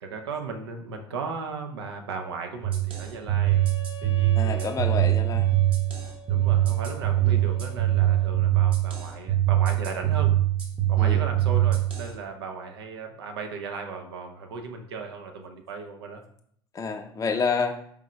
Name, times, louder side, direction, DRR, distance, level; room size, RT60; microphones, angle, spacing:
voice 1, 0.0-3.6 4.0-4.7 6.3-10.3 10.9-16.2, right 4 dB, 80° right, 4 dB, 0.6 m, -36 dB
sound 1, 2.6-12.1, right 13 dB, 45° right, 1.1 m, -23 dB
Wind instrument woodwind instrument, 3.4-8.5, right 7 dB, 80° left, 0.5 m, -44 dB
voice 2, 4.3-5.5 7.3-7.4 11.0-11.2 16.7-17.7, left 5 dB, 25° left, 4 dB, 0.5 m, -28 dB
4.5 x 3.6 x 3.1 m, 0.66 s
hypercardioid pair, 65°, 13 cm